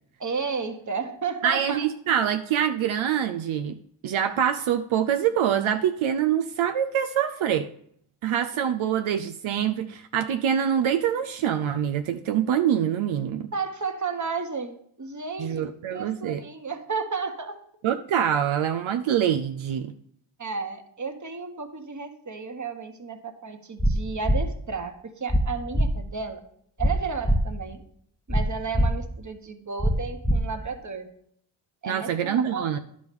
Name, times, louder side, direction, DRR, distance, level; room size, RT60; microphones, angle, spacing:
voice 1, 0.2-1.9 8.8-9.1 13.5-15.6 15.9-17.6 20.4-26.4 26.8-27.8 28.3-31.1 31.8-32.8, right 5 dB, 35° right, 7 dB, 1.3 m, -33 dB
voice 2, 1.4-3.8 4.0-7.7 8.2-13.5 15.4-16.4 17.8-19.9 31.9-32.8, right 9 dB, 80° right, 7 dB, 0.6 m, -25 dB
sound 1, 23.8-23.9 24.2-24.4 25.3-25.4 25.7-25.9 26.8-26.9 27.2-27.4 28.3-28.4 28.7-28.9 29.8-29.9 30.2-30.4, equal, ahead, 1.0 m, -21 dB
10.5 x 5.0 x 5.2 m, 0.66 s
cardioid pair, 40°, 48 cm